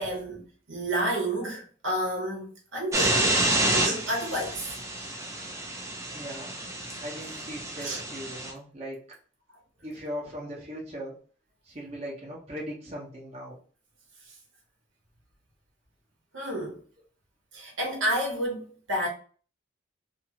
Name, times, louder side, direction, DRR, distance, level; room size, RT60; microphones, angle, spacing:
voice 1, 0.0-4.7 7.8-8.0 14.3-14.4 16.3-16.8 17.5-19.1, right 1 dB, 75° right, 1.0 m, -30 dB
sound 1, 2.9-8.5, right 1 dB, 15° right, 0.4 m, -29 dB
voice 2, 6.0-6.5 7.0-9.1 9.8-11.1 11.6-13.6, equal, 30° right, 0.8 m, -39 dB
2.6 x 2.4 x 2.8 m
head